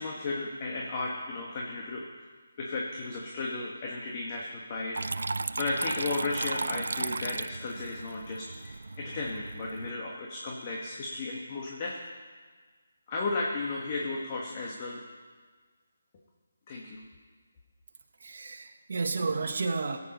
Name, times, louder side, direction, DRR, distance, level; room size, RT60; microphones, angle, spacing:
voice 1, 0.0-2.1 2.6-5.1 5.6-11.9 13.1-15.0 16.7-17.0, left 3 dB, 35° left, -2 dB, 1.6 m, -34 dB
Water tap faucet / Trickle dribble, 4.9-9.9, right 3 dB, 70° right, 0.3 m, -35 dB
voice 2, 18.2-20.0, right 4 dB, 55° right, 4 dB, 1.3 m, -31 dB
18.0 x 8.7 x 5.3 m, 1.5 s
figure-of-eight pair, 155°, 0 cm